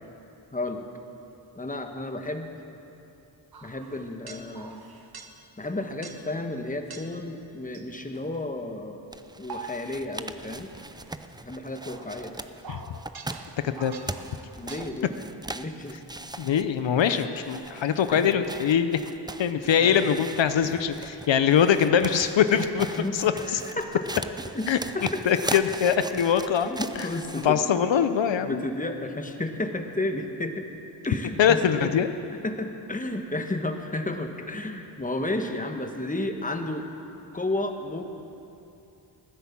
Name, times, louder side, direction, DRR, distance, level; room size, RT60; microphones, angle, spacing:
voice 1, 0.5-0.9 1.5-2.5 3.6-4.8 5.6-9.0 9.4-10.7 11.4-12.3 14.6-15.1 15.5-16.0 17.1-17.2 18.1-18.3 19.8-20.0 22.5-24.0 24.5-24.7 24.9-25.2 26.7-27.6 28.4-30.7 31.0-31.9 32.4-36.9 37.3-38.0, left 2 dB, 20° left, 5 dB, 1.2 m, -32 dB
sound 1, 3.5-5.5 6.0-6.4 6.9-7.3 7.7-8.5 9.2-10.2 10.5-14.8, right 4 dB, 55° right, 1.1 m, -45 dB
sound 2, 9.1-27.5, right 2 dB, 10° right, 0.5 m, -39 dB
voice 2, 13.6-14.0 16.4-19.0 19.4-22.9 23.1-23.6 24.7-24.8 25.3-26.7 27.0-27.1 27.4-28.6 31.4-32.1, left 8 dB, 80° left, 10 dB, 0.7 m, -23 dB
15.0 x 10.5 x 7.3 m, 2.8 s
wide cardioid pair, 70°, 44 cm